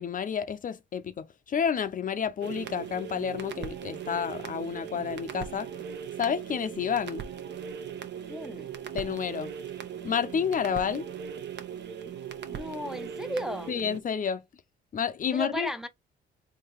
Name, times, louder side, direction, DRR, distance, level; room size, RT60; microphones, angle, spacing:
voice 1, 0.0-5.7 6.2-7.2 8.9-9.5 10.0-11.1 13.7-14.4 14.9-15.7, left 7 dB, 45° left, 0.5 m, -30 dB
sound 1, 2.4-14.0, right 8 dB, 60° right, 0.9 m, -39 dB
voice 2, 8.3-8.7 12.5-13.7 15.3-15.9, left 1 dB, 5° right, 0.5 m, -35 dB
3.7 x 2.8 x 4.5 m
cardioid pair, 90°, 20 cm